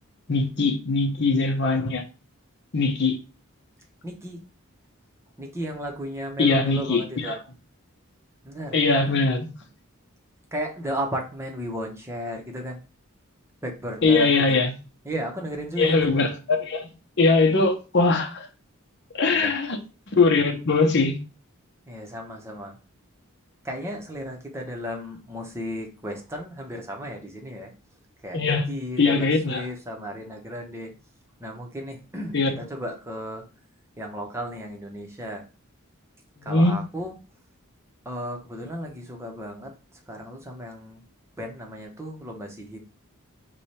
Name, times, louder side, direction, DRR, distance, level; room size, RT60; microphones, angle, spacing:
voice 1, 0.3-2.0 2.7-3.2 6.4-7.4 8.7-9.5 14.0-14.7 15.8-16.9 17.2-18.5 19.1-19.8 20.1-21.2 28.3-28.7 29.0-29.7 32.3-32.6 36.4-36.8, left 3 dB, 50° left, 0.8 m, -21 dB
voice 2, 4.0-4.4 5.4-7.3 8.4-8.8 9.1-9.2 10.5-12.8 13.6-14.6 15.0-16.1 19.3-19.5 21.9-22.8 23.6-27.7 28.2-30.9 31.4-33.4 34.0-35.4 36.4-37.1 38.0-39.7 40.1-41.0 41.4-42.8, equal, 10° right, 0.8 m, -34 dB
4.9 x 2.3 x 4.2 m
head